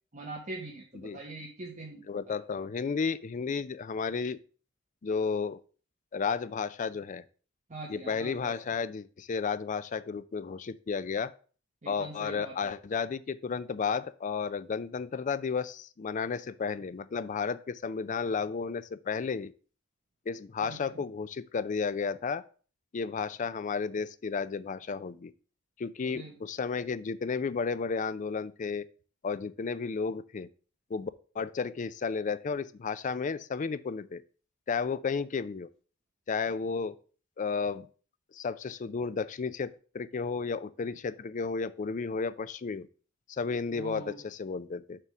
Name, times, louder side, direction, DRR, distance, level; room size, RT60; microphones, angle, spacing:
voice 1, 0.1-2.4 7.7-8.5 11.8-12.7 20.6-21.0 26.0-26.3 43.7-44.2, right 2 dB, 40° right, -1 dB, 1.1 m, -43 dB
voice 2, 2.1-4.4 5.0-5.6 6.1-7.2 7.9-11.3 11.9-19.5 20.3-22.4 22.9-25.3 25.8-28.8 29.2-30.5 30.9-34.2 34.7-35.7 36.3-37.0 37.4-37.9 38.3-39.7 39.9-42.9 43.3-45.0, left 5 dB, 40° left, 15 dB, 0.4 m, -33 dB
6.8 x 3.6 x 5.8 m, 0.40 s
head